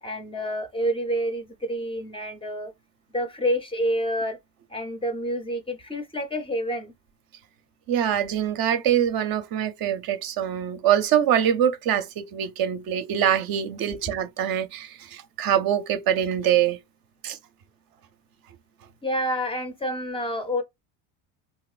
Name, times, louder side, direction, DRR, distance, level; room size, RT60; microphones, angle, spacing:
voice 1, 0.0-2.7 3.1-4.4 4.7-6.9 19.0-20.6, equal, 10° left, 0.5 m, -28 dB
voice 2, 7.9-16.8 17.2-17.4, right 10 dB, 45° right, 0.6 m, -24 dB
3.0 x 2.9 x 2.4 m
supercardioid pair, 110°, 50 cm